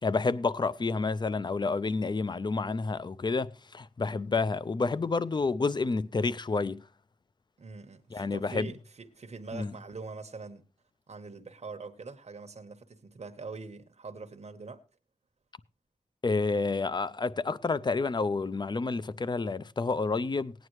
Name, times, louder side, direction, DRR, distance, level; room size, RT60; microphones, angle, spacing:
voice 1, 0.0-6.8 8.1-8.7 9.5-9.7 16.2-20.5, left 4 dB, 40° left, 0.5 m, -29 dB
voice 2, 7.6-10.6 11.1-14.8, right 4 dB, 70° right, 1.1 m, -43 dB
18.5 x 9.3 x 3.1 m
wide cardioid pair, 95°, 12 cm